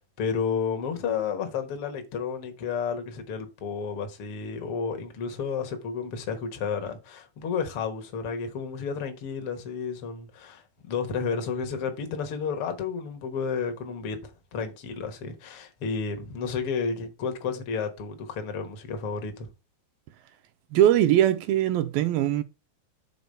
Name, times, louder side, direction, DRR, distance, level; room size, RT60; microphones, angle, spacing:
voice 1, 0.0-19.5, left 5 dB, 70° left, 1.3 m, -31 dB
voice 2, 20.7-22.4, right 12 dB, 80° right, 2.3 m, -21 dB
6.9 x 4.2 x 6.6 m
omnidirectional pair, 4.5 m